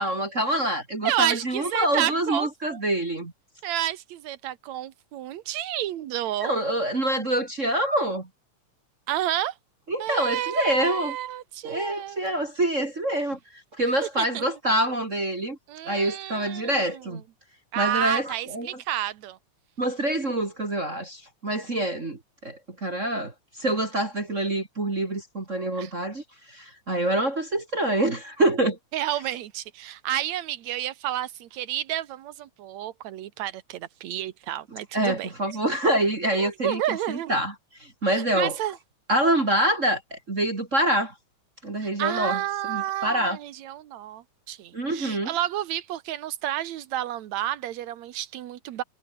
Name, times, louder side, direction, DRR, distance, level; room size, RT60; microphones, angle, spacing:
voice 1, 0.0-3.3 6.4-8.3 9.9-11.2 11.6-15.6 15.9-17.2 17.8-18.8 19.8-28.8 34.9-37.5 37.8-38.6 39.1-41.1 41.6-43.4 44.7-45.3, right 1 dB, 25° right, 2.7 m, -26 dB
voice 2, 1.0-2.8 3.6-6.5 9.1-9.5 10.0-12.3 14.2-14.4 15.7-17.2 17.7-19.4 25.8-25.9 28.9-35.3 36.4-37.3 38.1-38.8 41.8-48.8, right 12 dB, 70° right, 2.5 m, -30 dB
omnidirectional pair, 3.3 m